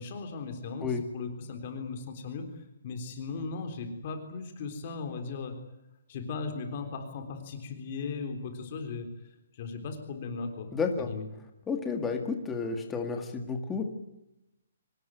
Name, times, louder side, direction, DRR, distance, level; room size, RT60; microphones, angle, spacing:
voice 1, 0.0-5.5 6.1-9.1 9.5-10.7 11.1-11.2, left 4 dB, 30° left, 6 dB, 3.7 m, -37 dB
voice 2, 10.7-11.1 11.7-13.8, left 5 dB, 5° left, 4 dB, 1.9 m, -31 dB
25.5 x 20.0 x 9.3 m, 0.90 s
hypercardioid pair, 180°, 0 cm